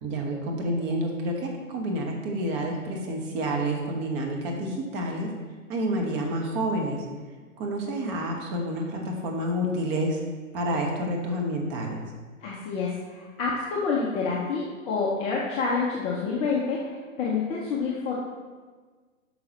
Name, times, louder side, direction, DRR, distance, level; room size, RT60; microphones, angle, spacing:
voice 1, 0.0-5.3 5.7-7.0 7.6-10.2 10.5-12.0, right 1 dB, 30° right, 1 dB, 1.1 m, -29 dB
voice 2, 12.4-18.2, left 4 dB, 15° left, -4 dB, 0.5 m, -28 dB
8.6 x 5.8 x 2.9 m, 1.4 s
hypercardioid pair, 125°, 40 cm